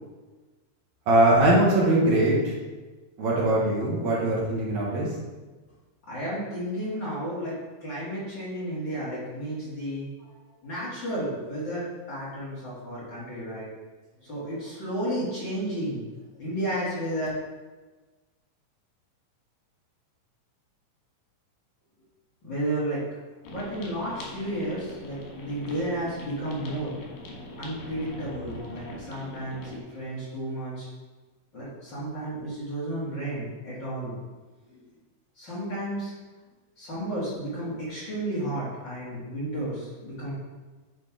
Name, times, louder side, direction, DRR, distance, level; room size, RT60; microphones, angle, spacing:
voice 1, 1.1-2.5 3.2-5.1, right 1 dB, 65° right, -5 dB, 2.5 m, -21 dB
voice 2, 6.1-7.6 7.8-10.1 10.6-13.7 14.2-16.0 16.4-17.3 22.4-23.0 23.5-26.9 27.6-30.9 31.5-34.1 34.7-34.8 35.4-36.1 36.8-40.3, right 1 dB, 40° left, -9 dB, 2.5 m, -32 dB
sound 1, 23.4-29.8, left 1 dB, 90° left, 3.2 m, -42 dB
9.3 x 4.0 x 4.8 m, 1.3 s
omnidirectional pair, 3.7 m